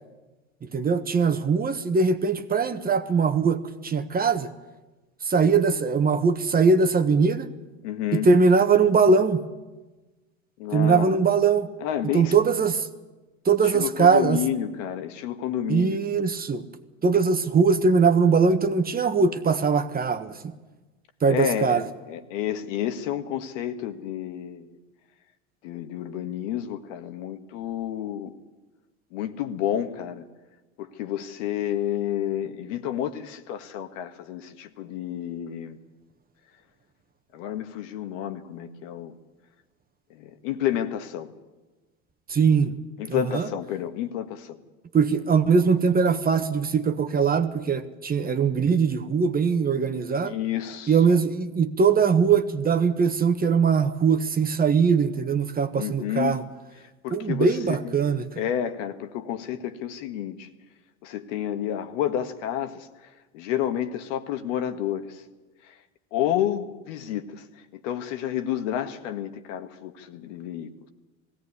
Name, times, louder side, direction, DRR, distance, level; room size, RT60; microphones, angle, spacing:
voice 1, 0.7-4.5 5.3-7.5 8.1-9.4 10.7-11.7 12.1-12.9 13.4-14.4 15.7-16.6 17.0-20.5 21.2-21.8 42.3-42.7 43.3-43.4 44.9-50.3 50.9-56.4 57.1-58.3, right 5 dB, 25° right, 9 dB, 1.4 m, -21 dB
voice 2, 7.8-8.3 10.6-11.2 11.8-12.3 13.6-16.0 21.2-24.8 25.6-28.3 29.1-30.3 30.8-35.8 37.3-39.1 40.1-41.3 43.0-44.6 50.2-51.0 55.7-56.4 56.8-58.0 58.4-60.5 61.0-65.2 65.6-65.8 66.1-70.9, left 10 dB, 70° left, 8 dB, 1.8 m, -30 dB
19.0 x 16.5 x 9.8 m, 1.2 s
hypercardioid pair, 100°, 39 cm